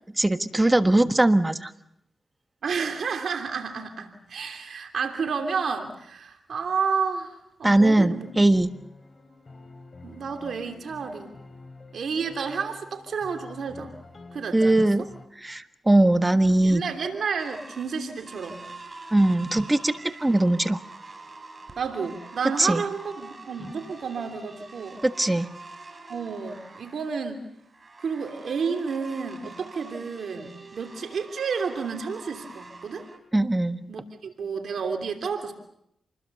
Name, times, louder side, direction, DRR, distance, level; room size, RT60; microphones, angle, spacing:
voice 1, 0.2-1.7 7.6-8.7 14.5-15.1 15.4-16.8 19.1-20.8 22.6-22.8 23.6-23.7 25.0-25.5 33.3-33.8, right 1 dB, 20° right, 10 dB, 1.4 m, -20 dB
voice 2, 2.6-8.3 10.0-11.3 11.9-13.9 14.3-14.9 16.6-18.7 21.8-25.0 26.1-27.4 28.0-33.0 33.9-35.5, right 5 dB, 75° right, 5 dB, 3.0 m, -31 dB
sound 1, 7.7-15.3, left 3 dB, 45° left, 4.1 m, -48 dB
sound 2, 16.0-33.2, right 3 dB, 40° right, 4.6 m, -46 dB
28.5 x 21.0 x 6.8 m, 0.75 s
cardioid pair, 55°, 0 cm